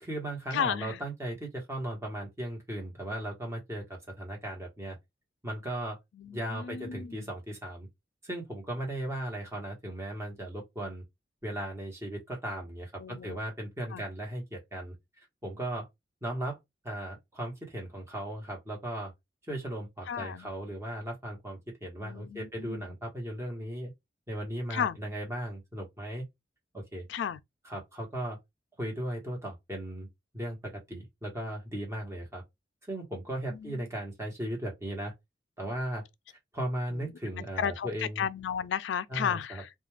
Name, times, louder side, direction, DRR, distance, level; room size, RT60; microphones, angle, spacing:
voice 1, 0.0-5.0 5.4-6.0 6.3-7.9 8.2-11.0 11.4-14.9 15.4-15.9 16.2-16.6 16.8-19.1 19.4-23.9 24.3-26.3 26.7-27.1 27.6-28.4 28.8-30.1 30.3-32.4 32.9-35.1 35.6-36.0 36.5-38.3 39.1-39.6, right 1 dB, 15° right, 1.1 m, -37 dB
voice 2, 0.5-1.0 6.2-7.3 13.0-13.4 13.9-14.0 20.1-20.5 22.0-22.8 24.7-25.0 27.1-27.4 33.5-33.8 36.9-37.1 37.3-39.7, left 8 dB, 80° left, 0.3 m, -34 dB
2.4 x 2.3 x 3.1 m
head